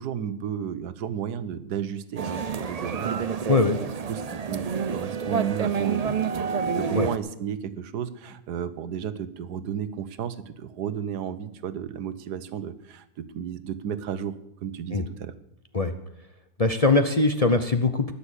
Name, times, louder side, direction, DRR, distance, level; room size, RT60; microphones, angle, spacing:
voice 1, 0.0-3.3 4.1-6.5 6.7-14.4 14.6-15.3, right 8 dB, 85° right, 13 dB, 1.5 m, -33 dB
sound 1, 2.2-7.2, right 6 dB, 55° right, 0.4 m, -28 dB
voice 2, 3.5-3.8 6.9-7.1 14.9-15.1 15.7-15.9 16.6-18.1, left 3 dB, 35° left, 7 dB, 0.6 m, -21 dB
20.0 x 6.9 x 8.3 m, 0.85 s
omnidirectional pair, 1.7 m